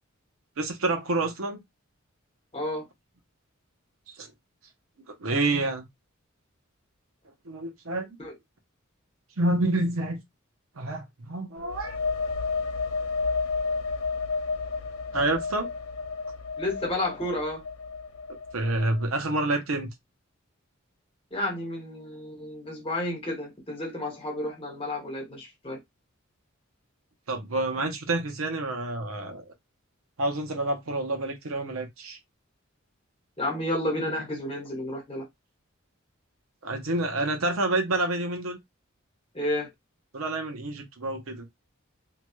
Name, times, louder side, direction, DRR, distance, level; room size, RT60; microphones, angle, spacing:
voice 1, 0.6-1.6 4.1-4.3 5.1-5.9 7.4-8.2 9.4-10.2 10.8-12.0 15.1-15.7 18.5-19.9 27.3-29.5 30.2-32.2 36.6-38.6 40.1-41.5, right 2 dB, 85° right, 0.8 m, -28 dB
voice 2, 2.5-2.9 8.2-8.3 16.6-17.6 21.3-25.8 33.4-35.2 39.3-39.7, left 1 dB, 30° left, 1.3 m, -31 dB
sound 1, 11.6-19.2, left 4 dB, 85° left, 0.5 m, -31 dB
2.9 x 2.3 x 3.0 m
head